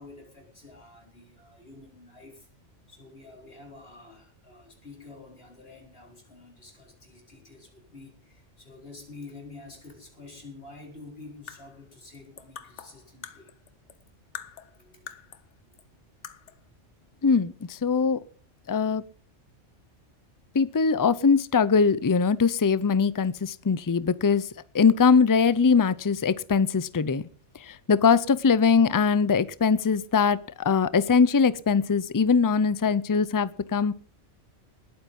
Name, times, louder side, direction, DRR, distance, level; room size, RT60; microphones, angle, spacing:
voice 1, 0.0-2.5 2.9-13.5 14.8-15.3 15.7-15.9, left 3 dB, 50° left, 1 dB, 4.9 m, -48 dB
sound 1, 11.2-14.0 14.3-15.5 15.8-15.9 16.2-16.7, left 8 dB, 70° left, 1.3 m, -44 dB
voice 2, 17.2-18.2 18.7-19.0 20.5-24.5 24.7-27.3 27.5-33.9, left 5 dB, 25° left, 18 dB, 0.4 m, -22 dB
20.0 x 9.3 x 5.4 m, 0.43 s
omnidirectional pair, 1.3 m